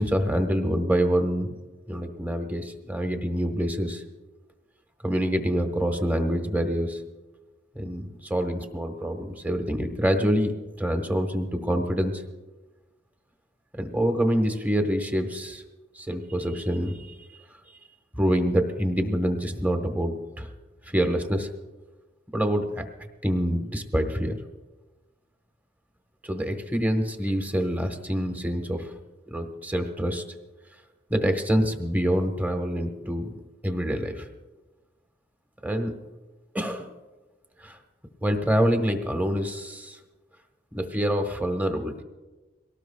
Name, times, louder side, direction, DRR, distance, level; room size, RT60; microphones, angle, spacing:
voice 1, 0.0-1.6 1.9-4.0 5.0-7.0 7.7-10.5 10.8-12.2 13.8-15.6 16.0-17.1 18.1-20.5 20.9-21.5 22.3-22.8 23.2-24.4 26.2-28.9 29.3-30.2 31.1-33.3 33.6-34.3 35.6-36.0 36.5-36.9 37.6-37.8 38.2-40.0 40.7-42.0, equal, 10° right, 5 dB, 1.2 m, -26 dB
23.0 x 18.5 x 2.3 m, 1.2 s
head